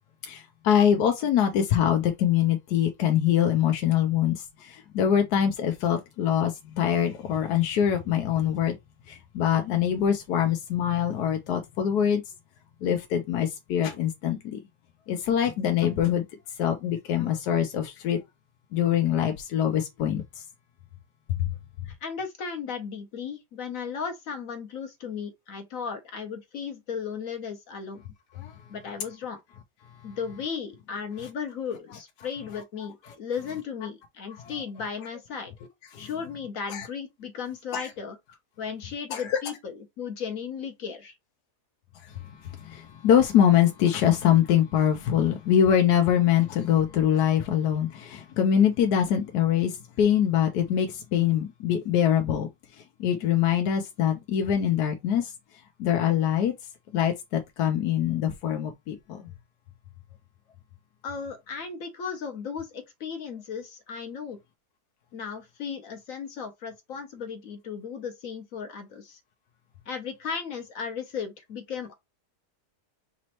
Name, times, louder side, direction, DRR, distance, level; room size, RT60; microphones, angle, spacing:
voice 1, 0.2-8.8 9.1-12.2 12.8-14.6 15.1-16.2 16.6-18.2 18.7-20.4 21.3-21.5 28.4-28.5 34.4-34.5 35.9-36.1 36.7-36.9 37.7-37.9 39.1-39.4 42.2-52.5 52.8-55.3 55.8-56.5 56.9-59.2, left 9 dB, 80° left, 1.2 m, -24 dB
voice 2, 21.8-28.0 28.7-29.4 30.0-35.5 36.0-41.1 61.0-64.4 65.1-69.2 69.9-71.9, left 6 dB, 60° left, 1.2 m, -35 dB
5.1 x 3.1 x 2.9 m
omnidirectional pair, 1.7 m